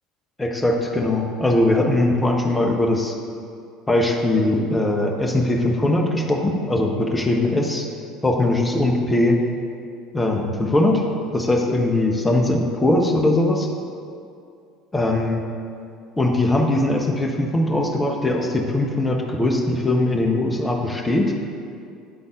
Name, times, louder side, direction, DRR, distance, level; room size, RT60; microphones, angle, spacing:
voice 1, 0.4-3.1 3.9-7.9 8.2-9.4 10.1-11.0 11.3-13.7 14.9-15.4 16.2-21.3, left 1 dB, 15° left, 0 dB, 0.9 m, -20 dB
9.0 x 3.8 x 3.8 m, 2.4 s
figure-of-eight pair, 60°, 0 cm